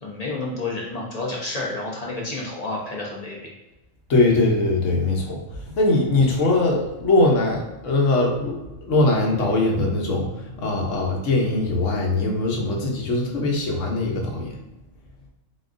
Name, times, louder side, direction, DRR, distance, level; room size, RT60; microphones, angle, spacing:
voice 1, 0.0-3.5, left 2 dB, 35° left, -4 dB, 0.7 m, -30 dB
voice 2, 4.1-5.4 5.8-8.6 8.9-10.3 10.6-14.5, left 2 dB, 70° left, 0 dB, 1.2 m, -21 dB
4.1 x 3.8 x 2.5 m, 1.0 s
omnidirectional pair, 1.3 m